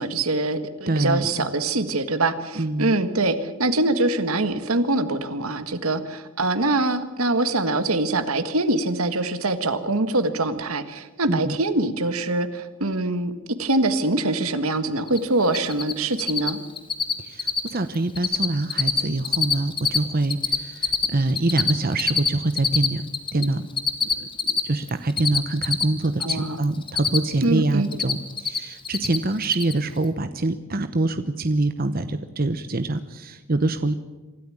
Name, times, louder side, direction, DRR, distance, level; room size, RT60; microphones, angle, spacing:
voice 1, 0.0-13.3 13.6-16.6 26.2-26.6 27.4-27.9, right 2 dB, 80° right, 11 dB, 1.7 m, -24 dB
voice 2, 0.9-1.5 2.5-2.9 11.3-11.6 17.2-23.0 23.3-23.6 24.2-33.9, right 2 dB, 45° right, 10 dB, 0.9 m, -25 dB
Cricket, 15.1-15.2 15.4-15.9 16.2-16.5 16.8-17.1 17.4-17.7 17.9-18.5 18.7-20.0 20.2-23.5 23.8-26.3 26.6-27.4 27.7-28.6 28.9-29.2 29.4-29.7, left 6 dB, 25° left, 1.6 m, -23 dB
25.0 x 13.5 x 8.7 m, 1.2 s
head